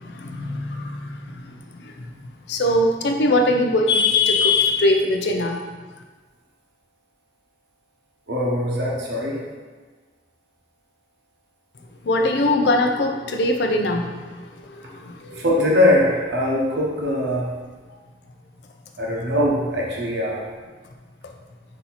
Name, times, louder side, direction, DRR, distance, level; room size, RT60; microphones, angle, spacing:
voice 1, 0.0-2.1 2.5-5.6 12.0-15.4, left 2 dB, 75° left, 3 dB, 0.5 m, -22 dB
voice 2, 8.3-9.4 15.4-17.5 19.0-20.4, left 1 dB, 75° right, -3 dB, 0.8 m, -21 dB
4.1 x 2.7 x 4.1 m, 1.4 s
head